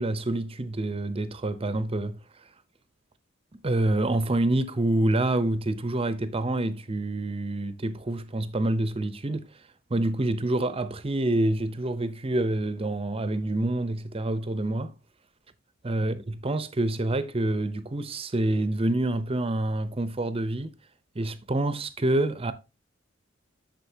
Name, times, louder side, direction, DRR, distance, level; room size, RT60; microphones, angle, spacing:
voice 1, 0.0-2.2 3.5-9.5 9.9-14.9 15.8-20.7 21.1-22.5, right 1 dB, 30° right, 0.7 m, -27 dB
8.0 x 6.5 x 2.8 m
head